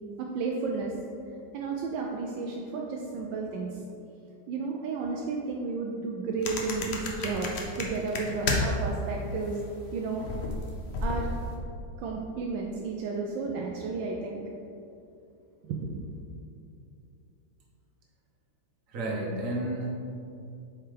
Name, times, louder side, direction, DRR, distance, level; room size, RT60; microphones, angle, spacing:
voice 1, 0.2-0.9 1.5-3.8 4.5-9.6 9.9-10.2 11.0-11.3 12.0-14.4 15.6-15.9, right 4 dB, 80° right, -1 dB, 1.3 m, -32 dB
sound 1, 6.4-8.9 9.2-11.5, left 2 dB, 55° left, 0.7 m, -32 dB
voice 2, 18.9-19.9, right 1 dB, 45° right, -3 dB, 1.4 m, -31 dB
7.9 x 4.6 x 3.4 m, 2.6 s
omnidirectional pair, 2.1 m